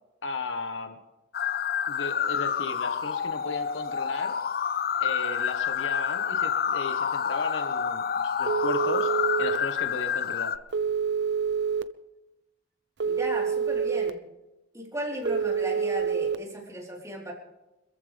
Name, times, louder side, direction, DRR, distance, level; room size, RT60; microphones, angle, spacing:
voice 1, 0.2-1.0 1.9-4.3 5.0-9.1 9.4-10.6, left 3 dB, 85° left, 7 dB, 1.5 m, -35 dB
sound 1, 1.3-10.6, left 7 dB, 55° left, 0.6 m, -28 dB
Telephone, 8.5-9.6 10.7-11.8 13.0-14.1 15.3-16.4, right 6 dB, 65° right, 0.7 m, -27 dB
voice 2, 13.0-14.2 14.7-17.3, right 1 dB, 15° right, -3 dB, 4.2 m, -35 dB
25.5 x 14.5 x 3.6 m, 1.0 s
head